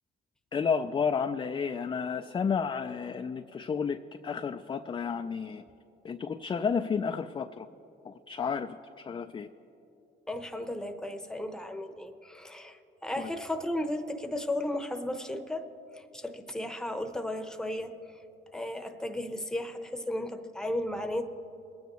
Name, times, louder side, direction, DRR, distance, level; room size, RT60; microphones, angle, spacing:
voice 1, 0.5-5.6 6.0-7.7 8.0-9.5 13.2-13.3, left 6 dB, 25° left, 8 dB, 0.3 m, -31 dB
voice 2, 10.3-15.7 15.9-18.2 18.5-21.2, left 1 dB, 5° left, 6 dB, 0.8 m, -35 dB
22.5 x 9.3 x 3.1 m, 2.9 s
cardioid pair, 90°, 20 cm